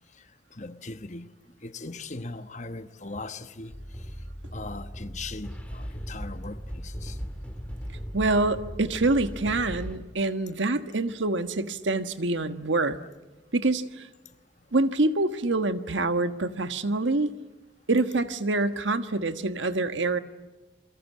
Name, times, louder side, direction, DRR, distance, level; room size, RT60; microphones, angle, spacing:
voice 1, 0.5-1.3 1.6-3.7 4.5-7.2, left 3 dB, 40° left, 1.2 m, -39 dB
sound 1, 3.7-10.0, equal, 5° left, 2.4 m, -38 dB
voice 2, 8.1-13.0 13.5-14.1 14.7-17.3 17.9-20.2, right 2 dB, 85° right, 1.4 m, -26 dB
28.5 x 23.0 x 8.4 m
head